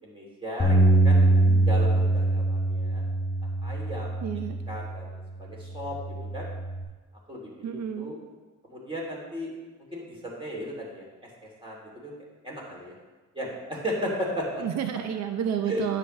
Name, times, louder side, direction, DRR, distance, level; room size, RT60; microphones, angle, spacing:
voice 1, 0.0-3.0 3.6-4.2 4.7-6.5 7.3-8.2 8.6-9.5 9.9-11.0 11.4-12.1 12.4-12.9 13.3-14.6 15.6-15.8, equal, 15° right, -3 dB, 2.8 m, -35 dB
Bass guitar, 0.6-5.1 5.7-6.8, right 2 dB, 15° left, 2.0 m, -23 dB
voice 2, 0.9-1.6 4.2-4.6 7.6-8.1 14.6-16.0, right 8 dB, 60° right, 7 dB, 0.7 m, -31 dB
9.8 x 7.5 x 3.2 m, 1.3 s
cardioid pair, 90°, 30 cm